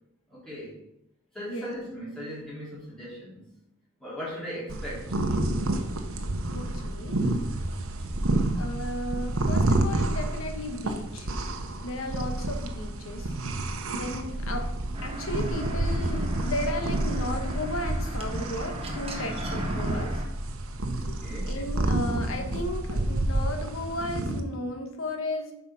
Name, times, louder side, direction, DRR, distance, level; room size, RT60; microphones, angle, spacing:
voice 1, 0.3-0.7 1.3-3.5 4.0-5.9 21.0-21.5, equal, ahead, -9 dB, 3.6 m, -39 dB
sound 1, 4.7-24.4, right 1 dB, 80° right, 1.0 m, -29 dB
voice 2, 6.5-7.2 8.5-11.3 11.8-13.3 13.9-20.2 21.1-21.2 21.5-25.5, left 1 dB, 75° left, 5 dB, 1.3 m, -34 dB
sound 2, 14.9-20.3, right 1 dB, 25° right, 1.2 m, -37 dB
8.3 x 4.7 x 5.8 m, 0.83 s
head